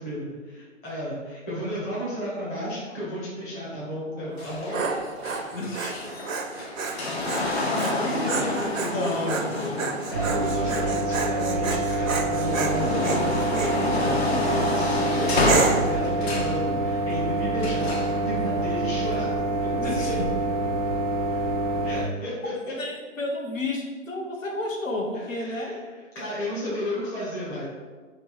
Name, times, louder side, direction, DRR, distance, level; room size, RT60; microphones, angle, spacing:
voice 1, 0.0-4.8 7.4-9.3 9.8-14.2 14.5-19.3 19.6-19.9 21.8-22.7 25.1-25.8 26.1-27.7, equal, 10° left, -9 dB, 0.7 m, -33 dB
Dog, 4.3-13.8 14.3-14.7 15.4-16.0, right 4 dB, 75° right, 0.7 m, -30 dB
sound 1, 4.4-11.6 12.1-16.6 17.6-18.2 19.0-19.1, left 2 dB, 50° left, 0.9 m, -29 dB
voice 2, 5.5-6.2 7.8-8.0 8.9-10.0 19.7-20.3 22.8-25.8, left 2 dB, 75° left, 1 dB, 1.1 m, -31 dB
sound 2, 10.1-22.0, right 2 dB, 30° right, 0.4 m, -26 dB
3.2 x 3.2 x 4.6 m, 1.4 s
figure-of-eight pair, 145°, 40 cm